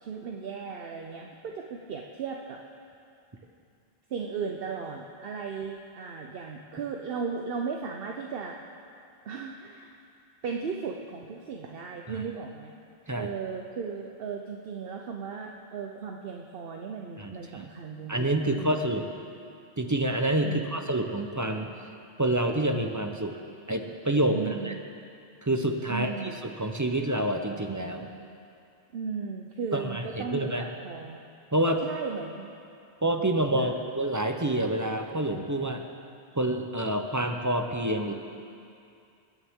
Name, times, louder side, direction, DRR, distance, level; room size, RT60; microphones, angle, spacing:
voice 1, 0.0-2.6 4.1-8.6 9.3-10.0 10.4-12.7 13.1-18.9 20.4-20.9 24.3-24.8 25.9-26.4 28.9-31.2 31.8-32.5 33.5-33.7, right 5 dB, 65° right, 1 dB, 0.9 m, -36 dB
voice 2, 17.2-17.7 18.1-19.1 19.8-21.7 22.2-23.4 23.7-24.7 25.4-26.1 26.4-28.1 29.7-30.7 31.5-31.8 33.0-35.8 36.3-38.1, right 1 dB, 20° right, 4 dB, 0.6 m, -28 dB
21.5 x 9.8 x 3.6 m, 2.5 s
omnidirectional pair, 1.1 m